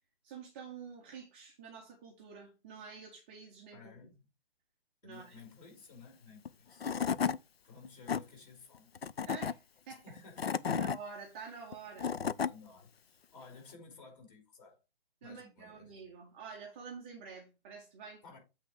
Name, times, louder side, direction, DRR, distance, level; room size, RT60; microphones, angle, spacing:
voice 1, 0.2-4.1 5.0-5.4 9.2-10.2 10.7-12.1 15.2-18.2, right 5 dB, 10° right, 0.4 m, -48 dB
voice 2, 3.7-4.1 5.0-6.9 7.6-8.9 10.0-10.8 12.4-14.8 15.2-16.0 18.2-18.4, left 4 dB, 45° left, 4.9 m, -54 dB
Tools / Wood, 6.5-6.6 6.8-7.4 7.8-8.2 9.0-9.5 10.2-11.0 11.7-12.5, left 7 dB, 90° left, 0.5 m, -32 dB
8.1 x 3.5 x 4.8 m
figure-of-eight pair, 140°, 30 cm